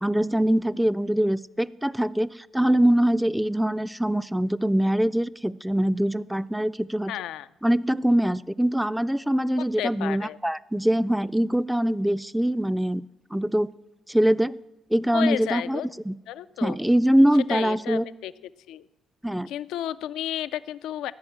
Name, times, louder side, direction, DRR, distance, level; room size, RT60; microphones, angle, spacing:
voice 1, 0.0-7.1 7.6-13.1 13.3-13.7 14.1-14.6 14.9-16.2 16.6-18.0 19.2-19.5, right 1 dB, 5° right, 17 dB, 0.3 m, -23 dB
voice 2, 7.1-7.5 9.8-10.4 15.1-15.9 16.3-16.8 17.5-18.3 18.7-18.9 19.5-21.1, left 12 dB, 90° left, 15 dB, 0.3 m, -32 dB
13.5 x 6.5 x 8.7 m, 0.98 s
cardioid pair, 90°, 0 cm